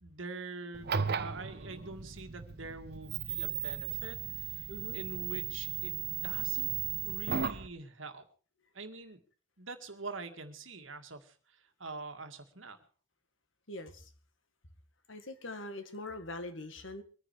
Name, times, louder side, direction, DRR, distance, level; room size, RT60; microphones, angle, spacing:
voice 1, 0.0-6.7 7.0-8.3 8.7-9.2 9.6-12.8, right 3 dB, 75° right, 7 dB, 2.0 m, -45 dB
sound 1, 0.7-7.7, right 8 dB, 55° right, 0.9 m, -36 dB
voice 2, 4.7-5.0 13.7-14.1 15.1-17.0, left 2 dB, 70° left, 8 dB, 2.0 m, -43 dB
23.0 x 10.0 x 4.8 m, 0.39 s
head